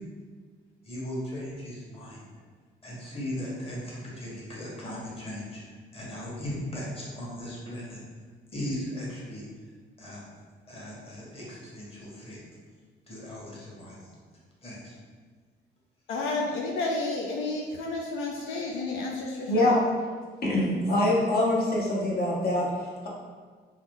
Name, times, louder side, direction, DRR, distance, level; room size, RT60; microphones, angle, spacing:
voice 1, 0.8-2.2 2.8-8.0 8.5-9.5 10.0-10.2 10.7-12.4 13.1-14.1 14.6-15.0, left 1 dB, 30° left, -6 dB, 1.2 m, -37 dB
voice 2, 16.1-19.7, left 3 dB, 85° left, -1 dB, 0.4 m, -31 dB
voice 3, 19.5-19.8 20.4-23.1, left 1 dB, 50° left, -4 dB, 0.8 m, -24 dB
2.8 x 2.3 x 3.5 m, 1.5 s
cardioid pair, 90°, 20 cm